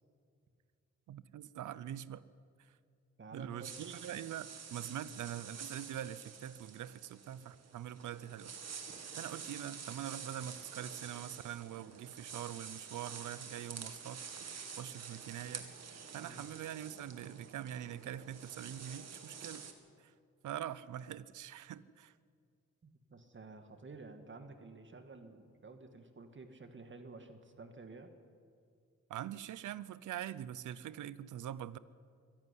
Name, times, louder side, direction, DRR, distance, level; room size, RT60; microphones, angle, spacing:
voice 1, 1.1-2.2 2.6-2.7 3.3-8.5 9.1-14.2 14.8-15.7 16.1-19.7 20.0-20.1 20.4-22.1 29.1-31.8, right 11 dB, 90° right, 17 dB, 0.7 m, -44 dB
voice 2, 3.2-3.9 4.8-5.1 16.2-16.5 22.8-28.1, right 3 dB, 40° right, 7 dB, 2.0 m, -52 dB
sound 1, 3.6-19.7, right 6 dB, 60° right, 2.1 m, -48 dB
23.5 x 11.5 x 9.9 m, 2.3 s
cardioid pair, 80°, 30 cm